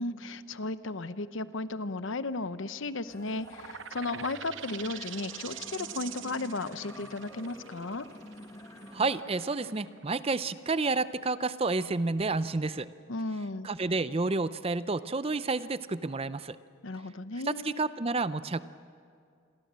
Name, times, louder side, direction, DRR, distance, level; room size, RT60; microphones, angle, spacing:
voice 1, 0.0-8.1 13.1-13.7 16.8-17.8, left 2 dB, 65° left, 13 dB, 0.9 m, -35 dB
sound 1, 3.1-9.2, left 1 dB, 15° left, 1.6 m, -49 dB
sound 2, 3.4-10.8, right 10 dB, 60° right, 0.8 m, -44 dB
voice 2, 8.9-12.9 13.6-16.6 17.5-18.6, right 3 dB, 25° right, 14 dB, 0.5 m, -30 dB
28.5 x 22.5 x 7.5 m, 2.3 s
head